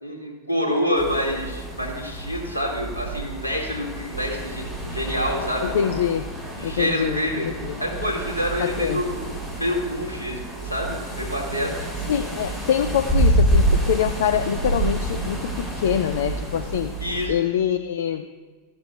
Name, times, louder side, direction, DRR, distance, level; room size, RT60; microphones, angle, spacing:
voice 1, 0.0-5.8 6.6-7.5 7.8-11.8 17.0-17.4, equal, 85° left, -1 dB, 1.9 m, -27 dB
sound 1, 0.9-17.3, right 1 dB, ahead, 3.0 m, -27 dB
voice 2, 5.6-6.3 6.6-7.8 8.6-9.1 12.1-17.0 17.3-18.3, left 9 dB, 60° left, 10 dB, 0.3 m, -25 dB
13.0 x 11.5 x 2.3 m, 1.5 s
figure-of-eight pair, 90°, 0 cm